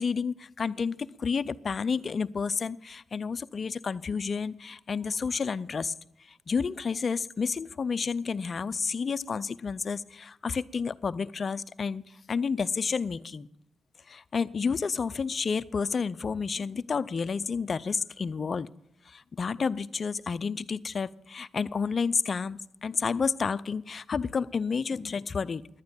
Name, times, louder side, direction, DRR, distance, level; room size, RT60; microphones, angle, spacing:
voice 1, 0.0-5.9 6.3-13.5 14.1-18.7 19.1-25.6, left 5 dB, 45° left, 0.5 m, -30 dB
10.5 x 9.5 x 9.1 m
cardioid pair, 75°, 0 cm